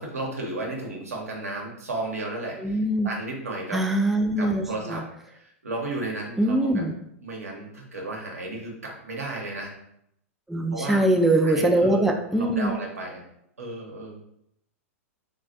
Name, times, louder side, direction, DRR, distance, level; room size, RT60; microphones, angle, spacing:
voice 1, 0.0-3.8 4.4-6.8 7.2-9.7 10.7-11.0 11.4-13.2 13.6-14.2, right 2 dB, 85° right, 0 dB, 0.8 m, -34 dB
voice 2, 2.6-3.1 3.7-5.0 6.4-7.0 10.5-12.7, right 1 dB, 5° right, 2 dB, 0.3 m, -22 dB
3.2 x 2.3 x 2.5 m, 0.75 s
hypercardioid pair, 105°, 8 cm